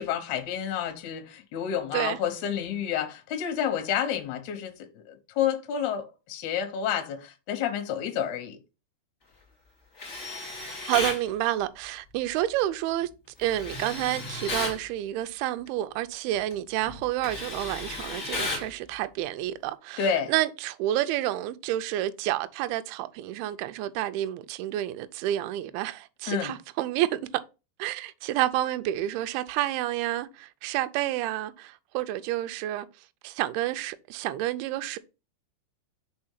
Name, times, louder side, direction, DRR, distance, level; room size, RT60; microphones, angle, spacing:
voice 1, 0.0-8.6 20.0-20.3 26.3-26.5, left 8 dB, 65° left, 2.0 m, -30 dB
Tools, 10.0-11.2 13.4-14.8 16.3-16.5 16.9-18.7, left 3 dB, 25° left, 2.4 m, -34 dB
voice 2, 10.6-13.1 13.4-27.2 27.8-32.9 33.2-35.0, right 14 dB, 80° right, 2.4 m, -29 dB
5.3 x 4.4 x 5.6 m
omnidirectional pair, 4.9 m